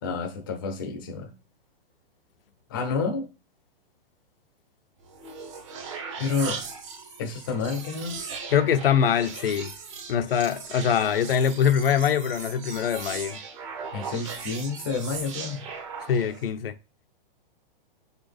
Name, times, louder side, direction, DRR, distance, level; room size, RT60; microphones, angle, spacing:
voice 1, 0.0-1.3 2.7-3.3 6.2-6.6 7.2-8.2 13.9-15.6, left 4 dB, 25° left, 0.6 m, -29 dB
sound 1, 5.0-16.5, right 5 dB, 30° right, 1.0 m, -38 dB
voice 2, 8.5-9.7 10.1-13.4 16.1-16.7, left 8 dB, 75° left, 0.7 m, -23 dB
6.9 x 4.1 x 3.4 m
hypercardioid pair, 180°, 29 cm